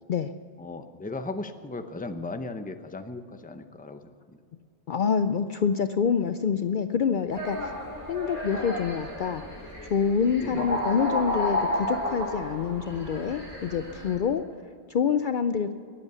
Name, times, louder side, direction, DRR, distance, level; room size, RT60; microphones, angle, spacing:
voice 1, 0.6-4.1 10.4-10.7, left 2 dB, 10° left, 8 dB, 0.7 m, -36 dB
voice 2, 4.9-7.7 8.1-9.4 9.9-14.4 14.9-15.7, left 6 dB, 55° left, 10 dB, 0.6 m, -26 dB
sound 1, 7.3-14.1, left 1 dB, 35° right, 4.2 m, -32 dB
21.5 x 8.2 x 7.0 m, 2.3 s
omnidirectional pair, 1.1 m